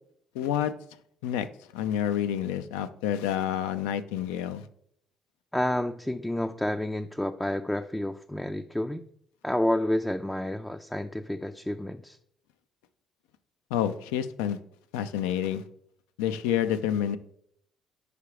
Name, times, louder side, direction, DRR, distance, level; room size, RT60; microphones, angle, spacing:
voice 1, 0.3-0.7 1.2-1.5 1.7-4.7 13.7-14.6 14.9-15.6 16.2-17.2, left 10 dB, 85° left, 11 dB, 0.4 m, -28 dB
voice 2, 5.5-9.0 9.4-12.2, left 1 dB, 10° left, 7 dB, 0.4 m, -29 dB
4.9 x 4.8 x 4.7 m, 0.69 s
hypercardioid pair, 55°, 0 cm